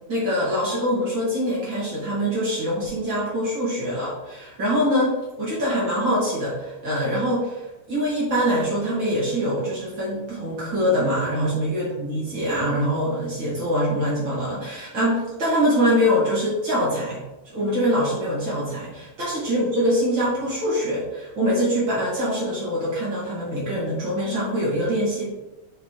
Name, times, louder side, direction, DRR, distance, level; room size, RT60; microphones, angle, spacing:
voice 1, 0.1-25.3, equal, 55° right, -7 dB, 1.3 m, -24 dB
8.2 x 3.3 x 4.4 m, 1.0 s
omnidirectional pair, 5.1 m